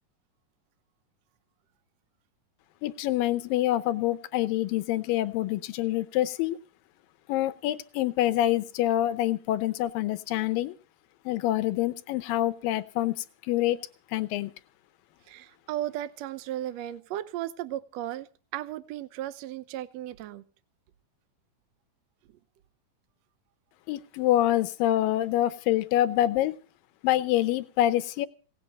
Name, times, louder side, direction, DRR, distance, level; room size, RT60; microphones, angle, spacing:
voice 1, 2.8-6.6 7.3-10.8 11.3-13.8 14.1-14.5 23.9-26.5 27.0-28.3, left 13 dB, 85° left, 13 dB, 2.6 m, -26 dB
voice 2, 15.3-18.3 18.5-20.4, right 13 dB, 70° right, 14 dB, 1.7 m, -35 dB
17.5 x 8.4 x 7.5 m, 0.37 s
omnidirectional pair, 3.9 m